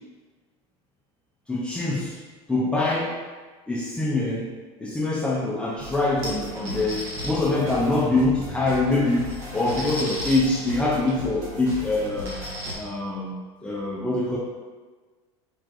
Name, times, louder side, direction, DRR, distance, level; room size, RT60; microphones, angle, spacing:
voice 1, 1.5-2.2 2.5-3.1 3.7-4.5 4.8-12.4 12.7-13.4 13.6-14.4, left 2 dB, 5° left, -6 dB, 0.5 m, -24 dB
sound 1, 5.8-12.7, equal, 55° right, 1.4 m, -37 dB
sound 2, 6.2-7.3 8.6-8.7 9.1-10.4 11.1-11.2 11.5-11.6 12.0-12.7, equal, 75° right, 1.2 m, -35 dB
4.4 x 3.1 x 2.6 m, 1.4 s
supercardioid pair, 115°, 15 cm